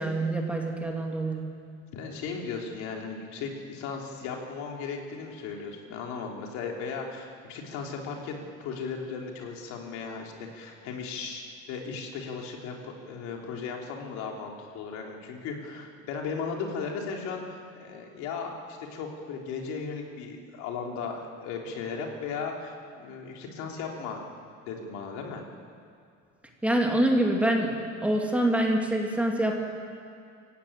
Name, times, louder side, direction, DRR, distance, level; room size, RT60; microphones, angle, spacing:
voice 1, 0.0-1.5 26.6-27.7 28.0-29.6, right 1 dB, 5° right, 0 dB, 2.2 m, -25 dB
voice 2, 1.9-24.2 24.6-25.4, left 5 dB, 70° left, 1 dB, 3.6 m, -36 dB
25.5 x 15.5 x 9.0 m, 2.5 s
cardioid pair, 170°, 29 cm